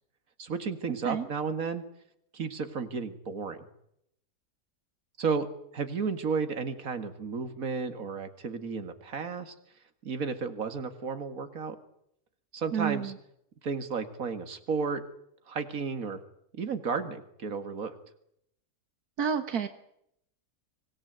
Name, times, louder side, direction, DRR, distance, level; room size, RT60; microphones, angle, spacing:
voice 1, 0.4-1.8 2.3-3.6 5.2-5.5 5.7-9.5 10.0-11.8 12.5-13.1 13.6-15.0 15.5-16.2 16.5-17.9, right 5 dB, 65° right, 8 dB, 2.4 m, -33 dB
voice 2, 12.7-13.2 19.2-19.7, right 7 dB, 90° right, 8 dB, 1.9 m, -29 dB
25.0 x 18.0 x 9.3 m, 0.75 s
omnidirectional pair, 1.6 m